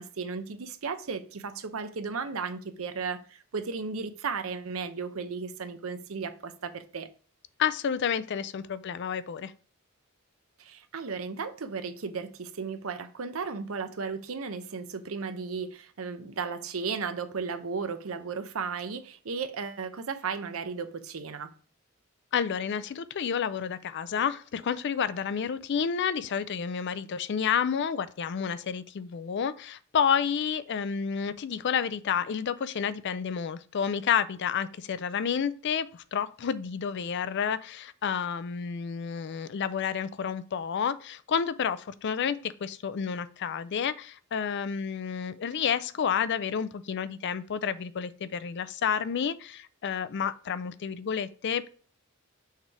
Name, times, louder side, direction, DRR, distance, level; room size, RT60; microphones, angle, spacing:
voice 1, 0.0-7.1 10.6-21.5, right 5 dB, 70° right, 0.7 m, -35 dB
voice 2, 7.6-9.5 22.3-51.7, left 7 dB, 55° left, 0.4 m, -30 dB
6.5 x 3.3 x 4.7 m
head